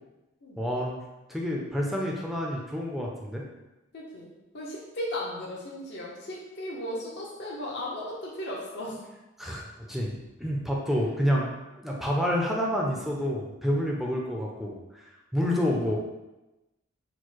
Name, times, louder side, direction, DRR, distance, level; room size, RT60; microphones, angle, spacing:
voice 1, 0.6-1.0 1.3-3.4 9.4-16.0, equal, ahead, -2 dB, 0.5 m, -29 dB
voice 2, 3.9-9.0 15.4-16.0, left 1 dB, 55° left, -4 dB, 0.8 m, -36 dB
4.4 x 2.1 x 4.5 m, 1.0 s
head